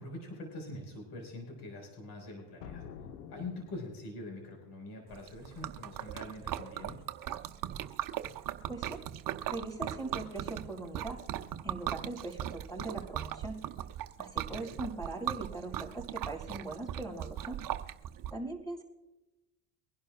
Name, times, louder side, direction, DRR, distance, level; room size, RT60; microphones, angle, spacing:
voice 1, 0.0-2.9 3.3-7.0 14.5-14.8, left 2 dB, 55° left, 1 dB, 5.2 m, -44 dB
sound 1, 2.6-4.3, left 7 dB, 80° left, 1.1 m, -48 dB
Liquid, 5.1-18.3, right 11 dB, 45° right, 0.9 m, -38 dB
voice 2, 8.7-9.0 9.5-11.2 11.6-13.6 14.2-17.6 18.3-18.8, right 2 dB, 10° left, 2 dB, 5.3 m, -40 dB
24.0 x 11.5 x 2.4 m, 1.0 s
supercardioid pair, 90°, 47 cm